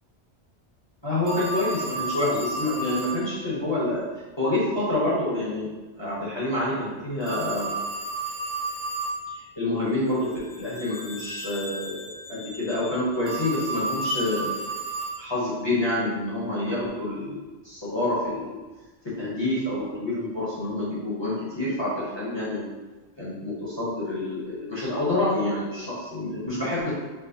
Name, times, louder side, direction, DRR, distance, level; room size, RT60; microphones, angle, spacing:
voice 1, 1.0-4.0 4.4-5.7 6.0-7.7 9.3-10.3 10.6-14.5 15.2-18.5 19.0-22.7 23.2-26.9, left 2 dB, 25° left, -9 dB, 0.8 m, -27 dB
Telephone, 1.3-3.2 7.2-9.2 13.2-15.2, right 3 dB, 30° right, 0.8 m, -31 dB
sound 1, 9.9-14.4, left 2 dB, 55° left, 0.4 m, -43 dB
4.5 x 2.0 x 2.6 m, 1.2 s
omnidirectional pair, 1.2 m